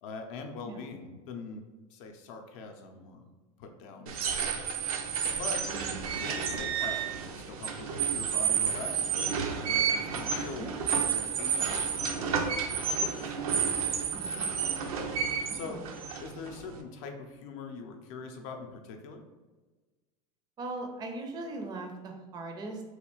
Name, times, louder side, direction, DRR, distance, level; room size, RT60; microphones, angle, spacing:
voice 1, 0.0-1.6 1.9-3.3 3.6-4.2 5.4-5.6 6.2-9.3 9.6-10.7 11.0-14.1 15.5-15.8 16.2-19.2, left 4 dB, 65° left, 5 dB, 0.5 m, -43 dB
sound 1, 4.1-16.8, right 7 dB, 85° right, 0.5 m, -31 dB
voice 2, 5.7-6.0 10.6-10.7 14.1-14.5 15.4-15.9 20.6-22.8, right 2 dB, 25° right, 4 dB, 0.4 m, -40 dB
3.1 x 2.4 x 3.0 m, 1.3 s
supercardioid pair, 110°, 18 cm